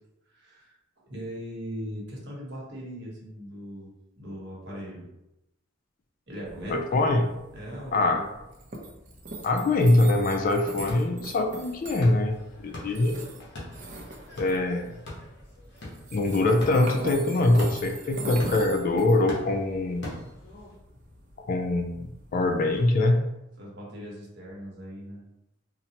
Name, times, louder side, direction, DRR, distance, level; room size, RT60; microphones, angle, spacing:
voice 1, 0.3-0.8 1.1-5.1 6.3-7.0 7.5-8.2 23.6-25.2, equal, 60° right, -3 dB, 1.0 m, -39 dB
sound 1, 6.4-22.9, right 2 dB, 40° right, 0.6 m, -42 dB
voice 2, 6.7-7.3 7.9-8.3 9.4-13.3 14.4-14.9 16.1-20.1 21.4-23.3, left 2 dB, 45° left, 5 dB, 0.4 m, -23 dB
sound 2, 10.6-20.8, left 1 dB, 60° left, 1.0 m, -43 dB
4.0 x 2.1 x 2.8 m, 0.88 s
head